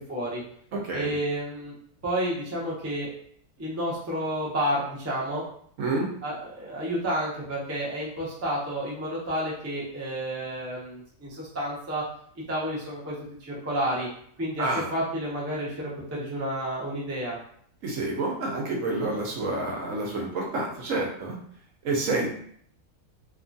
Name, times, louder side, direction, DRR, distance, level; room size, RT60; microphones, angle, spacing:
voice 1, 0.1-0.4 0.9-1.7 2.0-3.1 3.6-5.4 6.2-12.0 12.5-13.1 13.4-14.1 14.4-17.4, equal, 25° right, -6 dB, 0.3 m, -30 dB
voice 2, 0.7-1.1 5.8-6.1 14.6-14.9 17.8-21.4 21.8-22.3, right 2 dB, 65° right, -1 dB, 0.9 m, -28 dB
2.8 x 2.3 x 2.6 m, 0.62 s
omnidirectional pair, 1.6 m